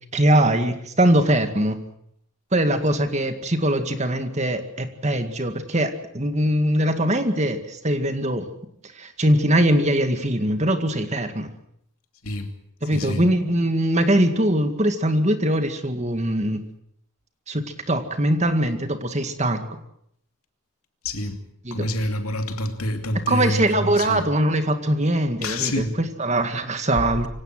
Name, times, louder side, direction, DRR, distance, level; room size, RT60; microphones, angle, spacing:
voice 1, 0.1-1.8 2.5-8.5 9.0-11.5 12.8-16.6 17.5-19.8 21.6-21.9 23.3-27.3, right 1 dB, 30° right, 8 dB, 2.0 m, -22 dB
voice 2, 12.9-13.2 21.0-21.4 21.7-23.6 24.0-24.2 25.4-25.9, left 1 dB, 90° left, 6 dB, 2.7 m, -27 dB
24.5 x 17.5 x 7.7 m, 0.72 s
head